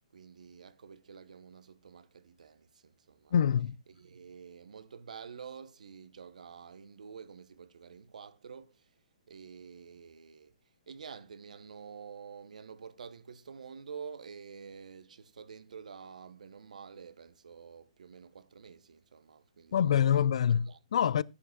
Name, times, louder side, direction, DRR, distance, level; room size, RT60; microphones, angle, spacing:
voice 1, 0.1-3.3 3.9-9.0 9.3-10.6 10.9-20.3 20.7-21.0, right 6 dB, 80° right, 0.9 m, -49 dB
voice 2, 3.3-3.8 19.7-21.2, left 8 dB, 55° left, 0.4 m, -26 dB
14.0 x 9.8 x 2.4 m
hypercardioid pair, 165°, 4 cm